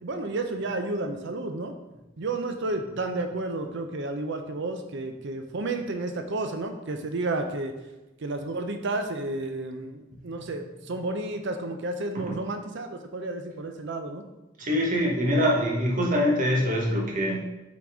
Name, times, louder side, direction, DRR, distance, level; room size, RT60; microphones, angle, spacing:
voice 1, 0.0-1.8 2.2-7.7 8.2-14.2, right 2 dB, 60° right, 7 dB, 0.6 m, -31 dB
voice 2, 14.6-17.4, equal, 40° right, -2 dB, 1.2 m, -24 dB
5.8 x 3.9 x 4.9 m, 1.0 s
head